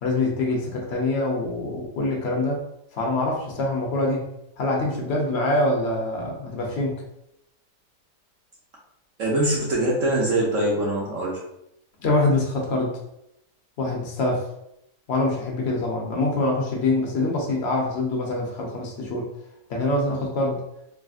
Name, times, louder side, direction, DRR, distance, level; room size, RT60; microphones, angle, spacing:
voice 1, 0.0-2.6 2.9-4.2 4.6-7.0 12.0-12.9 13.8-14.4 15.1-19.3 19.7-20.6, left 2 dB, 55° left, -1 dB, 0.8 m, -24 dB
voice 2, 9.2-11.4, right 1 dB, 60° right, -4 dB, 0.9 m, -23 dB
3.3 x 2.6 x 2.4 m, 0.81 s
omnidirectional pair, 1.8 m